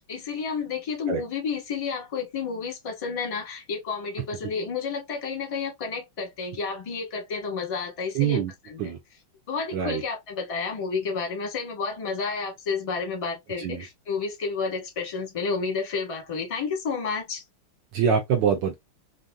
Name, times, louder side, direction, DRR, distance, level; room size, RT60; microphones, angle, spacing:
voice 1, 0.1-8.9 9.5-17.4, left 5 dB, 25° left, 0.7 m, -31 dB
voice 2, 8.1-8.5 8.8-9.0 9.7-10.0 13.6-13.8 17.9-18.7, right 7 dB, 75° right, 1.0 m, -24 dB
3.4 x 2.6 x 2.2 m
omnidirectional pair, 2.4 m